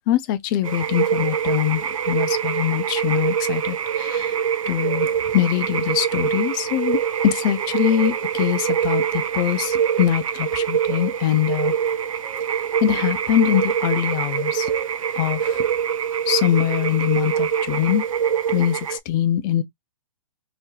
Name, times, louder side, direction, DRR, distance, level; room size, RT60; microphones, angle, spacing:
voice 1, 0.1-4.4 4.7-7.0 7.2-11.7 12.8-14.7 15.2-15.6 16.3-18.0 18.5-19.6, left 12 dB, 35° left, 0.5 m, -23 dB
sound 1, 0.6-19.0, right 8 dB, 80° right, 0.4 m, -24 dB
3.2 x 2.9 x 2.3 m
hypercardioid pair, 125°, 17 cm